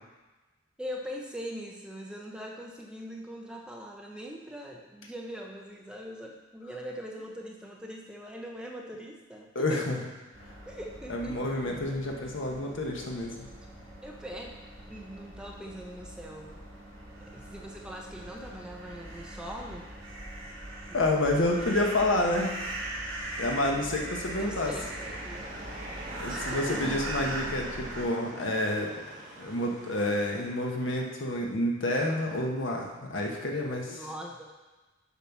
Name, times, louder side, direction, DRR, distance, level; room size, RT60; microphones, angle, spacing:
voice 1, 0.8-10.0 10.7-11.4 14.0-14.6 14.9-16.6 17.2-19.8 20.9-21.0 21.4-22.2 24.4-25.5 26.3-27.0 33.9-34.5, equal, 5° right, -1 dB, 0.7 m, -42 dB
voice 2, 9.5-10.0 11.1-13.5 20.9-22.6 23.4-24.7 26.1-28.9 29.4-34.0, left 1 dB, 70° left, 1 dB, 1.2 m, -29 dB
sound 1, 10.3-28.0, right 1 dB, 80° right, 2.9 m, -41 dB
sound 2, 24.3-31.0, right 1 dB, 40° right, 1.7 m, -43 dB
7.2 x 5.9 x 5.9 m, 1.2 s
head